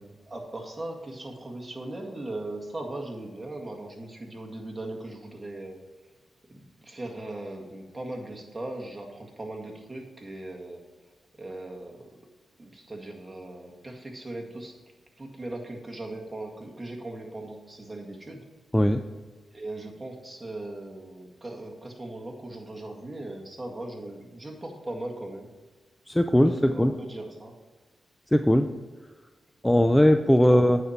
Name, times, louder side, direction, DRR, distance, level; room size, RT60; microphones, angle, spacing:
voice 1, 0.3-5.8 6.5-10.8 11.4-12.2 12.6-14.8 15.2-18.5 19.5-25.5 26.3-27.5 30.4-30.6, right 2 dB, 20° right, 0 dB, 2.0 m, -38 dB
voice 2, 26.1-27.0 28.3-28.7 29.6-30.8, equal, 5° left, 8 dB, 0.5 m, -20 dB
9.1 x 4.3 x 6.7 m, 1.3 s
cardioid pair, 60°, 0 cm